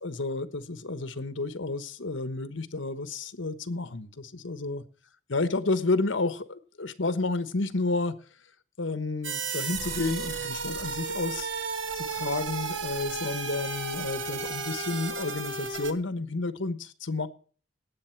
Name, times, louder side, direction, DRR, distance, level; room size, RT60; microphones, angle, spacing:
voice 1, 0.0-4.8 5.3-8.1 8.8-11.5 11.9-17.3, left 3 dB, 80° left, 1.2 m, -31 dB
sound 1, 9.2-15.9, right 4 dB, 75° right, 1.4 m, -33 dB
18.0 x 8.2 x 4.6 m
head